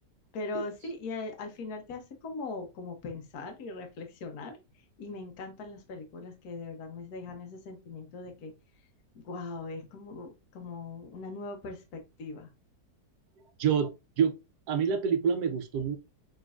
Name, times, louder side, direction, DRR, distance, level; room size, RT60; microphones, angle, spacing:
voice 1, 0.3-4.6 5.0-8.5 9.2-12.5, left 3 dB, 60° left, 1.4 m, -40 dB
voice 2, 13.6-13.9 14.2-14.4 14.7-16.0, right 7 dB, 70° right, 1.1 m, -26 dB
5.4 x 3.8 x 2.4 m
omnidirectional pair, 1.9 m